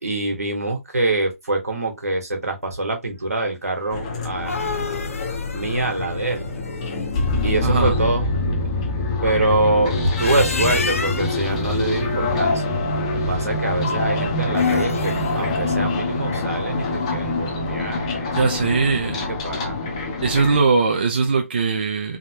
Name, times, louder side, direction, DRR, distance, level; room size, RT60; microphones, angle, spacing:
voice 1, 0.0-4.9 5.5-6.5 7.4-8.3 9.2-12.6 13.3-19.8, right 2 dB, 85° right, 1.4 m, -25 dB
sound 1, 3.9-20.6, left 2 dB, 25° left, 0.7 m, -25 dB
sound 2, 4.2-7.2 10.0-11.5 14.4-15.3, left 4 dB, 65° left, 0.7 m, -30 dB
voice 2, 7.6-8.0 18.4-19.2 20.2-22.2, right 4 dB, 40° right, 0.5 m, -20 dB
3.5 x 2.2 x 2.8 m
figure-of-eight pair, 160°, 8 cm